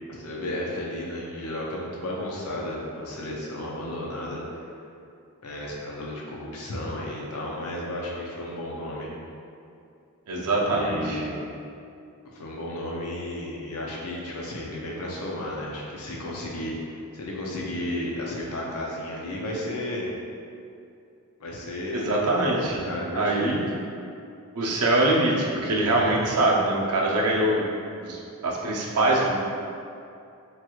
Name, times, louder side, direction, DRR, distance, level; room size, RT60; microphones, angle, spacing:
voice 1, 0.1-4.4 5.4-9.1 10.6-11.5 12.3-16.7 17.1-20.1 21.4-23.6 25.9-26.2, left 1 dB, 70° left, -3 dB, 0.6 m, -33 dB
voice 2, 10.3-11.2 21.9-22.9 23.1-23.7 24.6-27.6 28.0-29.3, right 2 dB, 90° right, -3 dB, 0.5 m, -23 dB
3.1 x 2.3 x 3.0 m, 2.5 s
head